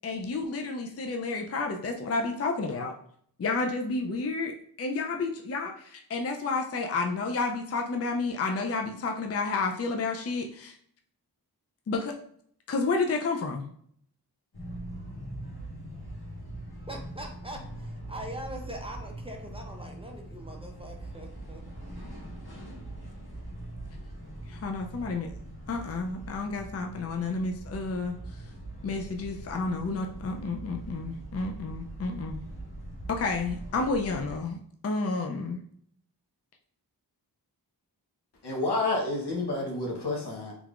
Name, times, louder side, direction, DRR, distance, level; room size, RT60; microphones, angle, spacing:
voice 1, 0.0-2.9 3.4-10.8 11.9-12.1 12.7-13.7 24.5-25.3 25.7-28.4 28.8-32.5 33.1-35.6, left 3 dB, 40° left, 3 dB, 0.4 m, -31 dB
sound 1, 14.5-34.4, right 1 dB, 70° left, 1.4 m, -42 dB
voice 2, 16.9-21.6, equal, 15° right, 1 dB, 0.6 m, -42 dB
voice 3, 38.4-40.5, left 2 dB, 90° left, -1 dB, 1.0 m, -29 dB
3.4 x 3.3 x 2.4 m, 0.64 s
wide cardioid pair, 75°, 39 cm